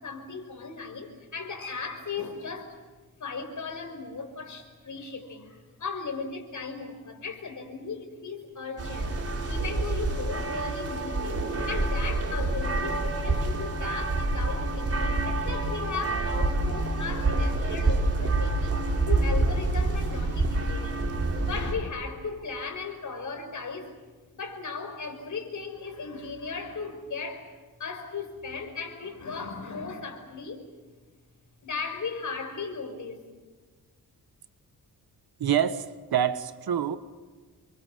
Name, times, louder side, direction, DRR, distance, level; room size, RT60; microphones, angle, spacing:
voice 1, 0.0-2.8 3.2-11.4 11.7-18.8 19.1-21.2 21.4-24.0 24.3-30.6 31.6-33.2, left 4 dB, 55° left, 6 dB, 5.6 m, -37 dB
sound 1, 8.8-21.7, right 2 dB, 40° right, 4.7 m, -27 dB
voice 2, 35.4-37.0, right 9 dB, 75° right, 11 dB, 1.6 m, -26 dB
28.5 x 24.0 x 7.7 m, 1.4 s
wide cardioid pair, 125°, 37 cm